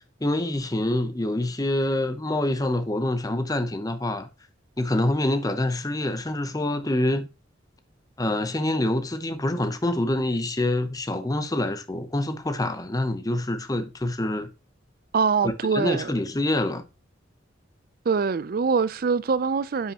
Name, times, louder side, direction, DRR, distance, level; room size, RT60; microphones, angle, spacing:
voice 1, 0.2-4.3 4.8-7.3 8.2-14.5 15.4-16.9, left 1 dB, 20° left, 0.7 m, -26 dB
voice 2, 15.1-16.1 18.1-19.9, right 5 dB, 50° right, 0.4 m, -24 dB
9.4 x 5.6 x 2.9 m
head